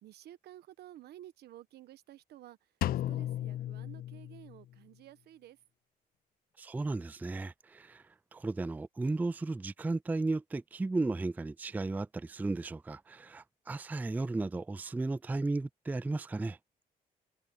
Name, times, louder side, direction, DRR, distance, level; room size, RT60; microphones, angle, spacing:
voice 1, 0.0-2.6 3.1-5.6, right 13 dB, 85° right, 1.2 m, -52 dB
Drum, 2.8-4.7, left 13 dB, 65° left, 0.4 m, -35 dB
voice 2, 6.6-8.0 8.3-16.6, right 3 dB, 10° right, 0.3 m, -34 dB
cardioid pair, 75°, 16 cm